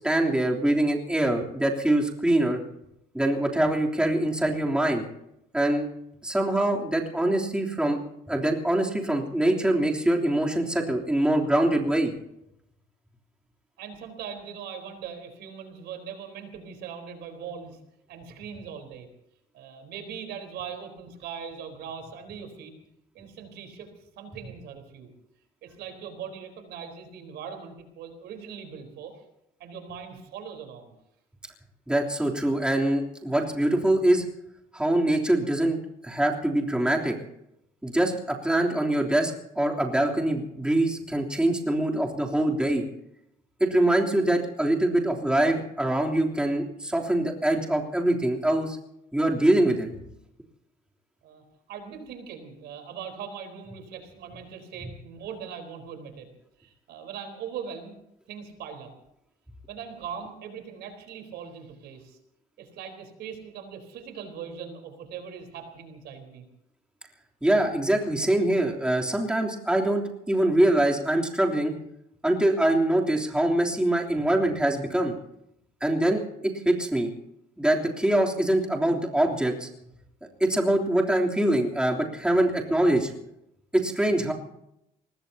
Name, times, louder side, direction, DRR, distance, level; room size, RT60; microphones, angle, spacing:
voice 1, 0.0-2.6 3.1-5.0 5.5-5.9 6.2-8.0 8.3-12.1 31.9-34.2 34.7-35.8 36.0-37.1 37.8-42.8 43.6-48.8 49.1-49.9 67.4-71.7 72.2-75.1 75.8-76.2 76.6-77.1 77.6-79.7 80.4-83.1 83.7-84.3, right 1 dB, 5° right, -1 dB, 3.2 m, -24 dB
voice 2, 13.8-17.8 18.1-19.1 19.5-22.7 23.1-23.9 24.2-25.1 25.6-29.2 29.6-30.9 51.2-51.4 51.7-56.3 56.6-57.9 58.3-58.9 59.7-62.2 62.6-66.4, right 7 dB, 80° right, 6 dB, 4.1 m, -40 dB
24.0 x 20.5 x 2.9 m, 0.81 s
cardioid pair, 110°, 17 cm